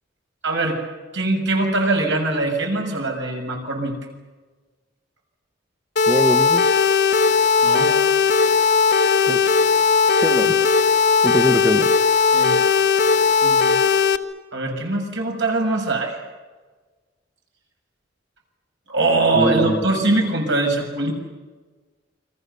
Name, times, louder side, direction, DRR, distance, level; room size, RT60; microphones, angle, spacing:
voice 1, 0.4-0.8 1.1-3.9 7.6-7.9 12.3-12.6 13.4-13.8 14.5-16.2 18.9-21.1, right 2 dB, 70° right, 3 dB, 6.7 m, -22 dB
sound 1, 6.0-14.2, left 5 dB, 60° left, 1.2 m, -17 dB
voice 2, 6.1-6.7 9.0-9.4 10.1-10.7 11.2-11.9 19.3-19.8, right 1 dB, 10° right, 5 dB, 1.2 m, -22 dB
29.5 x 24.5 x 7.0 m, 1.3 s
head